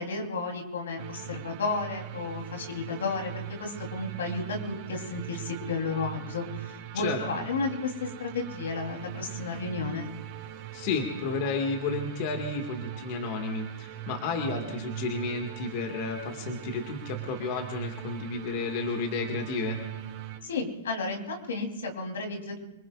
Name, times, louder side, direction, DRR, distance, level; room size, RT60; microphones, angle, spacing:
voice 1, 0.0-10.1 20.4-22.6, left 3 dB, 85° left, 2 dB, 3.7 m, -33 dB
sound 1, 1.0-20.4, right 12 dB, 40° right, 3.5 m, -40 dB
voice 2, 10.7-19.8, left 4 dB, 45° left, 3 dB, 2.0 m, -32 dB
27.0 x 20.5 x 2.5 m, 0.97 s
hypercardioid pair, 145°, 0 cm